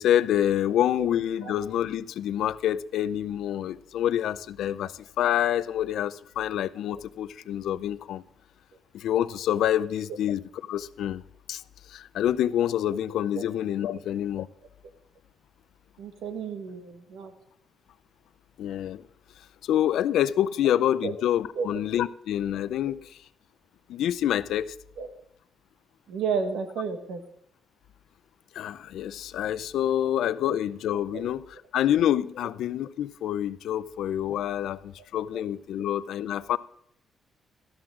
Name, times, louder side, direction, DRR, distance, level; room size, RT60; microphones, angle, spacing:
voice 1, 0.0-8.2 8.9-10.4 10.7-11.2 11.5-11.6 11.9-14.5 18.6-19.0 19.6-23.1 23.9-24.7 28.5-31.4 31.7-36.6, left 11 dB, 80° left, 0.4 m, -27 dB
voice 2, 16.0-17.3 21.0-21.1 21.5-21.8 25.0-25.1 26.1-27.2 31.1-31.3, right 5 dB, 85° right, 1.6 m, -32 dB
13.0 x 12.0 x 3.7 m
cardioid pair, 160°, 0 cm